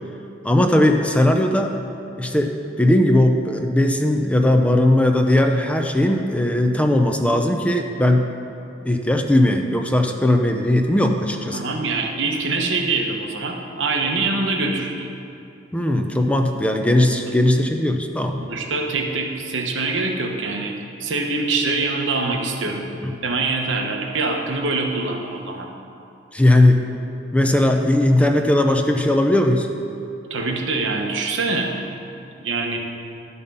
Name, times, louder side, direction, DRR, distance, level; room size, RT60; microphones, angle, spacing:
voice 1, 0.4-1.7 2.2-8.2 8.8-11.6 15.7-18.4 22.7-22.8 23.0-23.1 26.3-26.8 27.3-29.7, left 1 dB, 5° left, 4 dB, 0.5 m, -18 dB
voice 2, 11.5-15.1 18.4-22.8 23.2-25.7 30.3-31.7 32.4-32.8, right 3 dB, 80° right, 2 dB, 1.0 m, -24 dB
11.5 x 5.6 x 5.5 m, 2.6 s
head